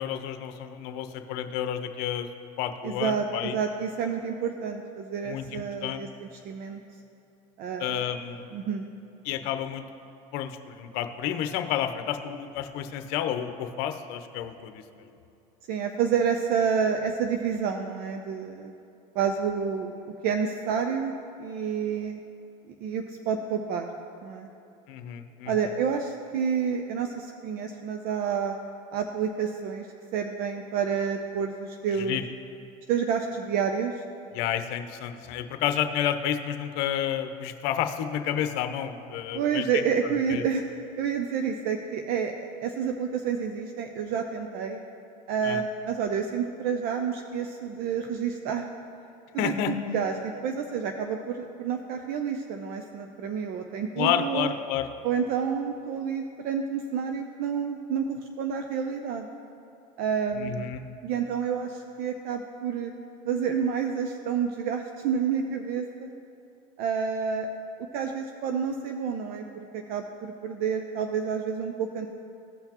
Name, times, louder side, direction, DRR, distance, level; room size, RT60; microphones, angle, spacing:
voice 1, 0.0-2.3 2.6-3.6 5.2-6.0 7.8-8.5 9.2-9.8 10.3-15.1 24.9-25.7 31.9-32.2 34.3-39.8 40.3-40.4 45.4-45.6 49.4-49.8 54.0-54.9 60.3-60.8, left 10 dB, 65° left, 8 dB, 0.8 m, -30 dB
voice 2, 2.8-6.1 6.4-6.8 7.6-8.1 8.5-8.8 15.7-18.7 19.1-19.9 20.2-21.1 21.4-22.2 22.7-23.9 24.2-24.5 25.5-28.6 28.9-29.9 30.1-32.2 32.9-34.0 39.3-40.6 41.0-44.8 45.3-48.7 49.3-54.5 55.0-59.3 60.0-60.7 61.0-62.9 63.3-66.1 66.8-67.5 67.9-72.1, right 7 dB, 60° right, 5 dB, 0.6 m, -29 dB
16.5 x 5.7 x 3.0 m, 2.8 s
supercardioid pair, 100°, 18 cm